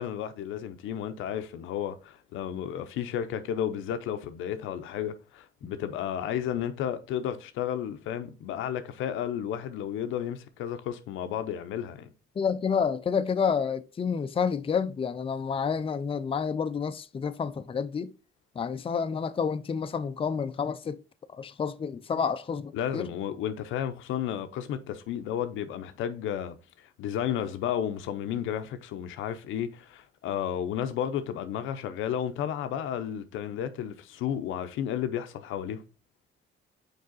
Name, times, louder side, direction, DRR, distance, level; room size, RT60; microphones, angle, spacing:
voice 1, 0.0-12.1 22.7-26.5 27.0-35.8, left 9 dB, 90° left, 0.6 m, -32 dB
voice 2, 12.4-18.1 18.6-21.0 21.3-23.1, left 6 dB, 25° left, 0.5 m, -29 dB
5.2 x 4.7 x 4.0 m
cardioid pair, 90°, 20 cm